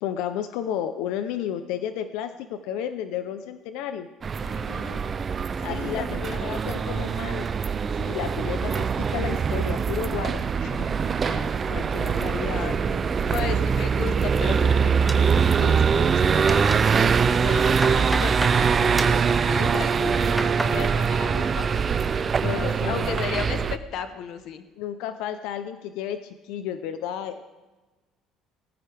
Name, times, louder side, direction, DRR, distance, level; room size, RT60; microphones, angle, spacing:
voice 1, 0.0-4.1 5.6-7.5 8.0-10.4 22.3-23.2 24.8-27.6, left 9 dB, 85° left, 10 dB, 0.7 m, -32 dB
sound 1, 4.2-23.8, right 6 dB, 25° right, 0.4 m, -23 dB
voice 2, 4.4-5.0 5.7-6.4 6.7-7.1 10.6-21.9 22.5-24.6, left 8 dB, 55° left, 9 dB, 1.1 m, -36 dB
sound 2, 15.1-15.9 16.2-17.0 17.4-18.6 19.0-19.3 19.9-20.8 21.1-21.7 22.0-22.5, right 1 dB, 5° right, 0.8 m, -34 dB
19.0 x 14.5 x 3.5 m, 1.2 s
cardioid pair, 160°, 0 cm